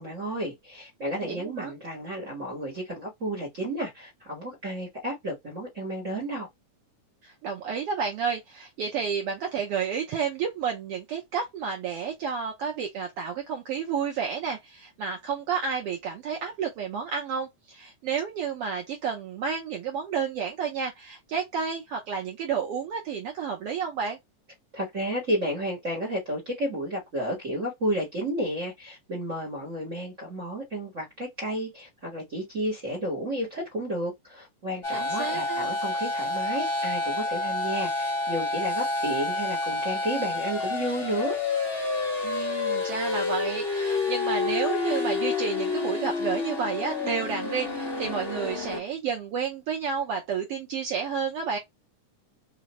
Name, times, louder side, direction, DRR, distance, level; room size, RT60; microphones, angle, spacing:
voice 1, 0.0-6.5 24.7-41.4, equal, 55° right, 0.8 m, -32 dB
voice 2, 1.2-1.7 7.2-24.2 34.9-35.7 42.2-51.6, right 6 dB, 90° right, 1.3 m, -31 dB
sound 1, 34.8-48.8, left 3 dB, 40° left, 0.8 m, -29 dB
4.9 x 2.1 x 2.9 m
omnidirectional pair, 3.6 m